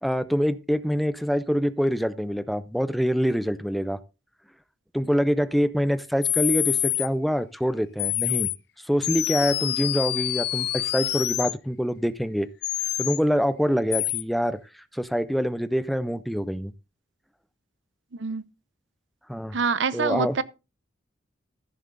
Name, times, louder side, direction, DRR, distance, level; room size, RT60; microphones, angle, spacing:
voice 1, 0.0-4.0 4.9-8.5 8.9-12.5 13.0-14.6 14.9-16.7 19.3-19.6 19.9-20.4, equal, ahead, 0.6 m, -25 dB
sound 1, 6.2-7.1 8.0-8.6 9.0-11.5 12.6-13.2 13.9-14.2, left 15 dB, 55° left, 0.5 m, -26 dB
voice 2, 19.5-20.4, right 5 dB, 70° right, 0.8 m, -25 dB
14.5 x 7.2 x 4.0 m
head